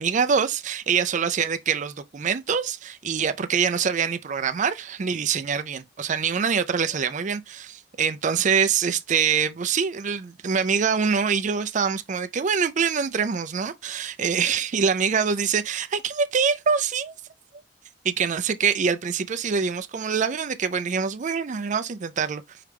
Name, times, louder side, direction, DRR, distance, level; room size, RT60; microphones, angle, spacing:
voice 1, 0.0-17.1 17.5-17.6 18.0-22.6, right 6 dB, 45° right, 0.4 m, -25 dB
4.8 x 3.4 x 3.1 m
head